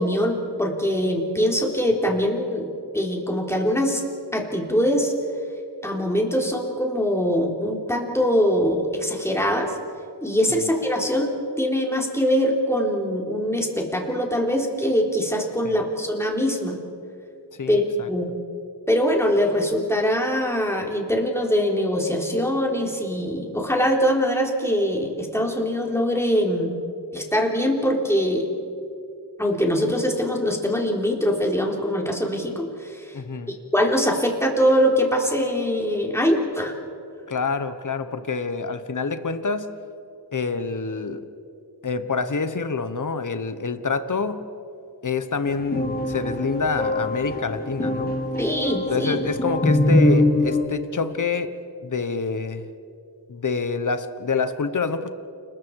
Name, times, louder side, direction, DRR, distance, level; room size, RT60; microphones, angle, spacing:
voice 1, 0.0-4.0 4.3-5.1 5.8-9.7 10.2-16.8 17.7-18.3 18.9-26.7 27.1-28.5 29.4-33.1 33.5-36.7 48.4-49.2, equal, 5° left, 0 dB, 3.7 m, -23 dB
voice 2, 17.5-18.1 33.1-33.6 37.3-39.7 40.3-41.3 41.8-44.5 45.0-48.2 48.9-51.6 51.8-52.7 53.3-55.1, left 4 dB, 45° left, 11 dB, 1.3 m, -27 dB
sound 1, 45.5-50.6, left 1 dB, 20° left, 3.2 m, -23 dB
29.5 x 21.0 x 4.8 m, 2.5 s
wide cardioid pair, 60°, 41 cm